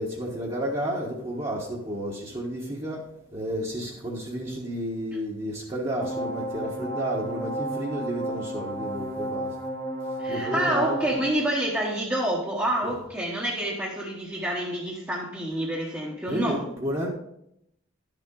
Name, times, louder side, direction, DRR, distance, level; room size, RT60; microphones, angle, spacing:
voice 1, 0.0-3.0 3.3-9.6 10.3-11.0 12.8-12.9 16.3-17.1, equal, 25° right, -6 dB, 1.3 m, -31 dB
sound 1, 6.0-11.3, right 1 dB, 20° left, 1.0 m, -32 dB
voice 2, 10.2-16.6, right 1 dB, 10° right, -5 dB, 1.1 m, -28 dB
11.5 x 6.9 x 3.8 m, 0.77 s
head